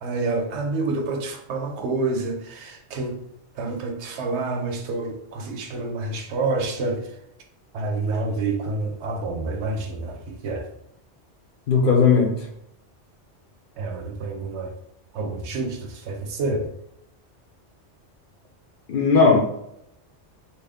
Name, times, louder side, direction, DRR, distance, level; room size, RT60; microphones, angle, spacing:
voice 1, 0.0-3.2 3.6-7.1 7.7-10.7 13.8-14.7 15.1-16.7, right 3 dB, 70° right, 4 dB, 0.8 m, -28 dB
voice 2, 11.7-12.5 18.9-19.4, left 5 dB, 55° left, 0 dB, 0.7 m, -17 dB
2.7 x 2.4 x 3.4 m, 0.78 s
omnidirectional pair, 1.2 m